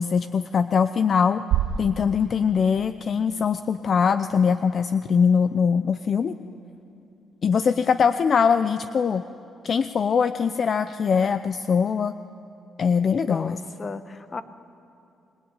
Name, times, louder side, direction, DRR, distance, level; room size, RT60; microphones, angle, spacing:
voice 1, 0.0-1.4 1.8-6.3 7.4-9.2 9.6-12.1 12.8-13.6, left 6 dB, 50° left, 11 dB, 0.7 m, -22 dB
sound 1, 1.5-3.6, right 10 dB, 90° right, 0.9 m, -29 dB
voice 2, 13.2-14.4, left 4 dB, 35° left, 11 dB, 1.3 m, -35 dB
27.0 x 21.5 x 9.8 m, 2.7 s
cardioid pair, 90°, 0 cm